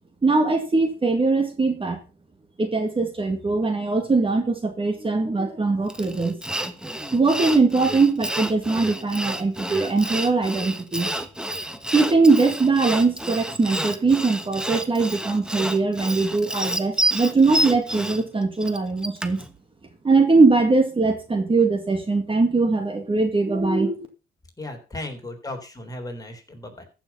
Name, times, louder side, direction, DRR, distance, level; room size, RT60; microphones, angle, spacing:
voice 1, 0.2-2.0 2.6-6.4 7.1-11.1 11.9-19.4 20.0-24.1, right 3 dB, 25° right, 6 dB, 2.0 m, -21 dB
Sawing, 5.9-19.5, right 1 dB, 5° right, 1.3 m, -29 dB
voice 2, 24.6-26.9, left 1 dB, 20° left, 4 dB, 3.7 m, -36 dB
14.5 x 6.2 x 5.6 m, 0.33 s
cardioid pair, 90°, 20 cm